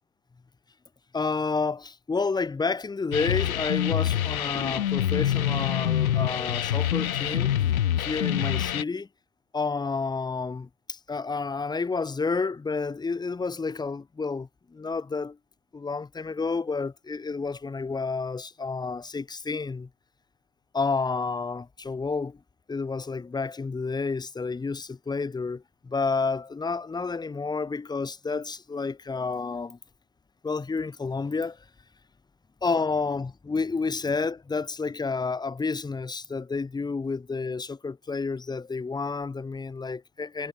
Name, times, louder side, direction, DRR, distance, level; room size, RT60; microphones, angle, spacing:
voice 1, 1.1-7.5 8.0-9.1 9.5-15.4 15.7-19.9 20.7-22.4 22.7-29.8 30.4-31.6 32.6-40.5, left 4 dB, 10° left, 2.0 m, -30 dB
sound 1, 3.1-8.8, left 11 dB, 65° left, 1.6 m, -26 dB
figure-of-eight pair, 95°, 45 cm